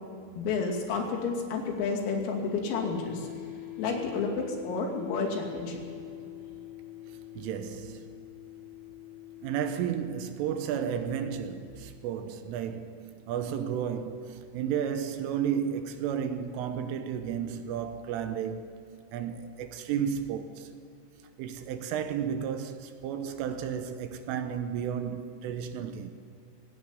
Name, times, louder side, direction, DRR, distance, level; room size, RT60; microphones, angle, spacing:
voice 1, 0.4-3.3 3.8-5.8, left 4 dB, 85° left, 5.3 m, -30 dB
sound 1, 2.7-17.9, left 14 dB, 70° left, 1.1 m, -47 dB
voice 2, 7.1-8.1 9.4-20.7 21.4-26.1, right 8 dB, 80° right, 3.3 m, -33 dB
17.0 x 17.0 x 9.7 m
omnidirectional pair, 5.9 m